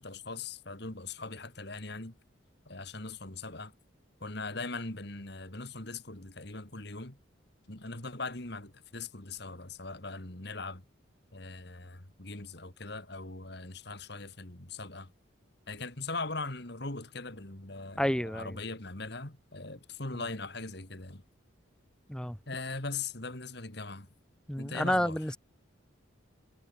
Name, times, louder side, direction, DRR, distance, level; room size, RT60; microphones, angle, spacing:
voice 1, 0.0-2.2 2.7-3.7 4.2-7.2 7.7-10.8 11.3-15.1 15.7-21.2 22.5-24.1 24.6-25.2, left 3 dB, 55° left, 2.7 m, -40 dB
voice 2, 18.0-18.6 20.1-20.2 22.1-22.4 24.5-25.4, equal, 5° left, 1.2 m, -30 dB
head